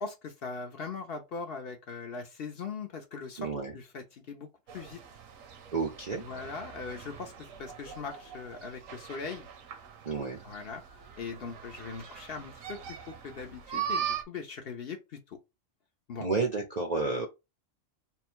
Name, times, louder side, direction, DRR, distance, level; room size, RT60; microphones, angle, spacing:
voice 1, 0.0-4.5 4.7-5.0 6.2-7.3 7.6-9.5 10.4-10.8 11.2-12.8 13.2-15.4 16.1-16.3, left 4 dB, 55° left, 0.8 m, -40 dB
voice 2, 3.4-3.7 5.7-6.2 10.1-10.4 16.2-17.3, right 4 dB, 45° right, 0.5 m, -31 dB
sound 1, 4.7-14.2, right 8 dB, 75° right, 1.1 m, -41 dB
3.7 x 2.2 x 4.3 m
omnidirectional pair, 1.4 m